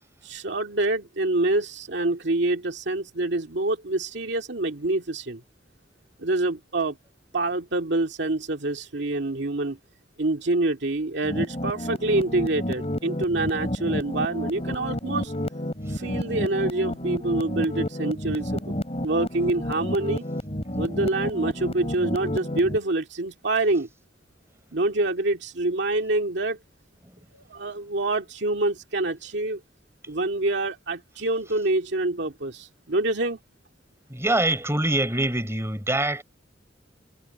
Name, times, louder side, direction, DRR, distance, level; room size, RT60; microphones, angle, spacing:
voice 1, 0.2-5.4 6.2-7.0 7.3-9.8 10.2-15.3 15.9-18.8 19.0-20.2 20.8-23.9 24.7-26.6 27.3-29.6 30.1-33.4, right 2 dB, 65° right, 2.2 m, -26 dB
sound 1, 11.2-22.8, equal, 35° left, 4.9 m, -30 dB
voice 2, 34.1-36.2, right 1 dB, 15° right, 5.2 m, -24 dB
head